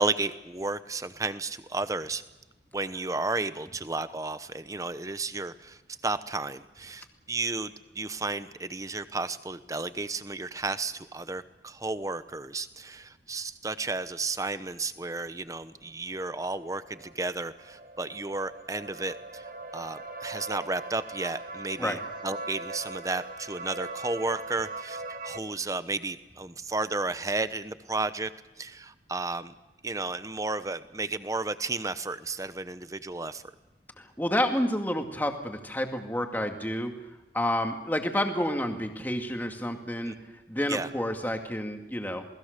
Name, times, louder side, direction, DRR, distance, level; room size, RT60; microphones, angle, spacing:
voice 1, 0.0-2.2 2.7-28.3 28.6-29.5 29.8-33.4 40.1-40.2 40.7-40.9, right 3 dB, 20° right, 12 dB, 0.9 m, -33 dB
sound 1, 16.1-25.4, right 2 dB, 50° right, 1.8 m, -41 dB
voice 2, 34.0-36.9 37.3-40.2 40.5-42.3, left 1 dB, 10° left, 4 dB, 2.2 m, -29 dB
28.0 x 20.0 x 6.7 m, 1.1 s
head